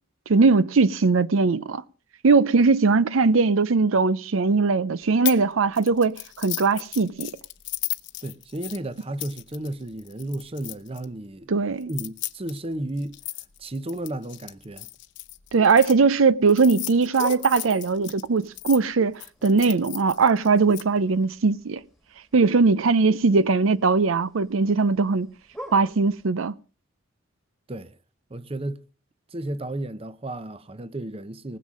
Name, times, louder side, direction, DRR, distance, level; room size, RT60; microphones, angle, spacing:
voice 1, 0.3-1.8 2.2-7.3 11.5-11.9 15.5-21.8 22.3-25.3 25.7-26.5, right 4 dB, 75° right, 0.6 m, -20 dB
sound 1, 5.2-5.4 5.7-11.0 11.8-15.9 16.5-18.8 19.2-20.8, left 17 dB, 60° left, 0.8 m, -35 dB
voice 2, 8.2-11.5 11.9-13.2 13.6-14.9 27.7-28.0 28.3-28.8 29.3-31.6, right 1 dB, 30° right, 0.7 m, -33 dB
sound 2, 17.2-26.3, equal, ahead, 1.7 m, -47 dB
19.5 x 7.4 x 6.3 m
head